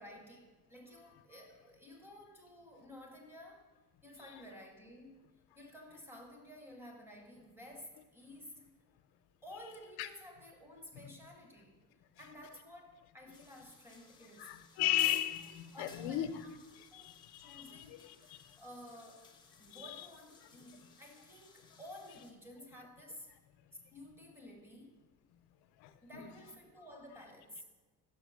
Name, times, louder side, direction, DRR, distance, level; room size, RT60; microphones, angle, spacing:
voice 1, 0.0-3.7 4.0-5.2 5.6-8.7 9.4-11.8 12.2-14.6 15.7-16.6 16.9-19.3 19.6-23.3 23.9-25.0 26.0-27.6, left 1 dB, 5° right, 2 dB, 0.8 m, -53 dB
sound 1, 13.3-22.3, left 5 dB, 10° left, 0.5 m, -57 dB
voice 2, 14.4-16.4 16.9-18.6 19.7-19.8 25.8-26.3, left 13 dB, 75° left, 11 dB, 0.6 m, -36 dB
6.0 x 5.2 x 6.1 m, 1.2 s
cardioid pair, 175°, 39 cm